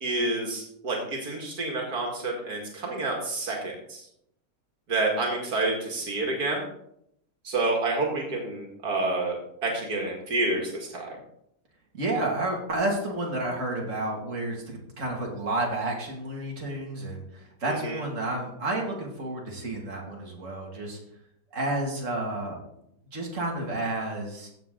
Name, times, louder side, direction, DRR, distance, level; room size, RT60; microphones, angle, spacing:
voice 1, 0.0-4.0 4.9-6.6 7.4-11.2 17.7-18.0, right 2 dB, 85° right, 0 dB, 2.6 m, -29 dB
voice 2, 11.9-21.0 21.5-22.6 23.1-24.5, right 2 dB, 55° right, -1 dB, 2.8 m, -31 dB
15.0 x 7.7 x 3.9 m, 0.75 s
omnidirectional pair, 1.6 m